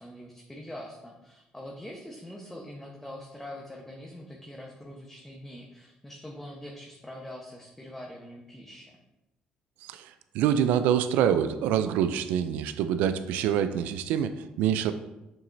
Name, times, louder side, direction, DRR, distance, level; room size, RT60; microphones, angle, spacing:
voice 1, 0.0-8.9, left 1 dB, 10° left, -1 dB, 1.0 m, -43 dB
voice 2, 9.8-14.9, right 9 dB, 90° right, 11 dB, 0.4 m, -26 dB
7.4 x 5.7 x 2.7 m, 0.96 s
cardioid pair, 85°, 3 cm